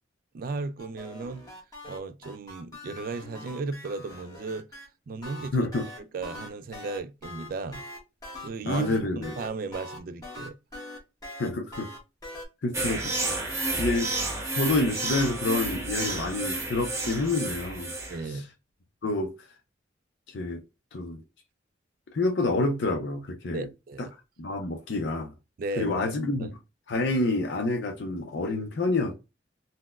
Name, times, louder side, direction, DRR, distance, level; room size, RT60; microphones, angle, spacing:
voice 1, 0.3-1.4 1.8-4.7 5.1-5.7 6.1-7.8 8.4-10.6 18.1-18.5 23.5-24.1 25.6-26.5, right 3 dB, 50° right, 0.3 m, -35 dB
sound 1, 0.8-4.9 5.2-12.5, left 1 dB, 20° left, 1.0 m, -42 dB
voice 2, 5.5-5.9 8.6-9.3 11.4-11.9 12.6-13.1 13.5-14.1 14.5-17.9 18.3-18.4 19.0-19.3 20.3-20.6 20.9-21.2 22.1-23.7 24.0-24.1 24.4-25.3 25.8-26.5 26.9-29.1, left 2 dB, 70° left, 0.5 m, -28 dB
sound 2, 12.7-18.2, right 2 dB, 15° right, 0.8 m, -31 dB
4.0 x 2.1 x 2.3 m
head